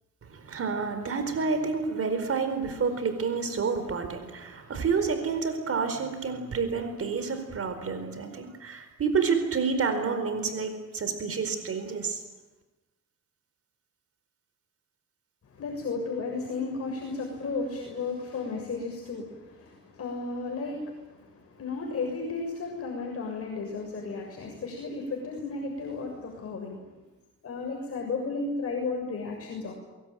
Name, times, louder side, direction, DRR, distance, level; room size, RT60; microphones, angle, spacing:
voice 1, 0.2-12.2, right 5 dB, 50° right, 8 dB, 4.6 m, -29 dB
voice 2, 15.4-27.0 27.4-29.7, left 4 dB, 50° left, 0 dB, 7.0 m, -34 dB
24.0 x 22.5 x 9.3 m, 1.1 s
cardioid pair, 90°, 30 cm